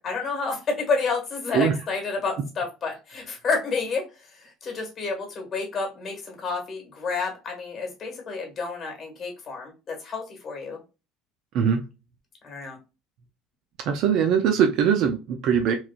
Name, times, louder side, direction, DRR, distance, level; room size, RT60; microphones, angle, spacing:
voice 1, 0.0-10.8 12.4-12.8, left 4 dB, 30° left, 2 dB, 1.5 m, -30 dB
voice 2, 13.9-15.7, right 7 dB, 60° right, 5 dB, 0.5 m, -21 dB
3.2 x 2.5 x 2.2 m, 0.28 s
cardioid pair, 125°, 0 cm